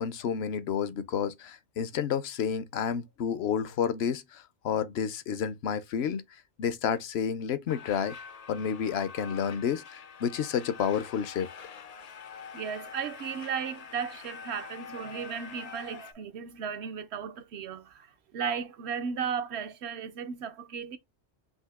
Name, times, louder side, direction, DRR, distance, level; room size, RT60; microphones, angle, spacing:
voice 1, 0.0-6.2 6.6-8.2 8.5-11.5, left 7 dB, 70° left, 0.8 m, -30 dB
sound 1, 7.7-16.1, left 6 dB, 50° left, 0.4 m, -45 dB
voice 2, 12.5-21.0, right 7 dB, 70° right, 0.9 m, -35 dB
5.6 x 2.6 x 3.4 m
omnidirectional pair, 1.2 m